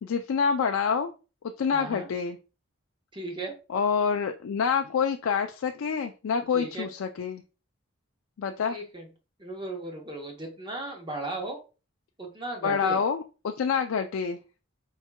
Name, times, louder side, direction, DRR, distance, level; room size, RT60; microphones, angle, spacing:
voice 1, 0.0-1.1 1.6-2.4 3.7-7.4 8.4-8.8 12.6-14.4, left 6 dB, 80° left, 5 dB, 0.4 m, -27 dB
voice 2, 1.7-2.1 3.1-3.5 6.5-6.9 8.7-9.1 9.4-11.6 12.2-13.0, right 2 dB, 25° right, 1 dB, 0.8 m, -36 dB
4.6 x 4.3 x 2.2 m, 0.32 s
head